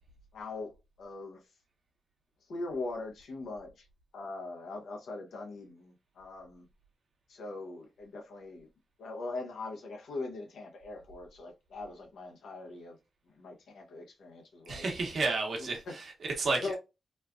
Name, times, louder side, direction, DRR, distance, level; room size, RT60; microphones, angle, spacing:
voice 1, 0.3-1.4 2.5-3.9 4.1-6.7 7.3-8.7 9.0-13.0 13.4-14.8 15.5-15.9 16.6-16.8, left 3 dB, 85° left, 0.9 m, -41 dB
voice 2, 14.7-16.8, right 3 dB, 70° right, 1.0 m, -32 dB
3.1 x 2.3 x 2.4 m
cardioid pair, 55°, 0 cm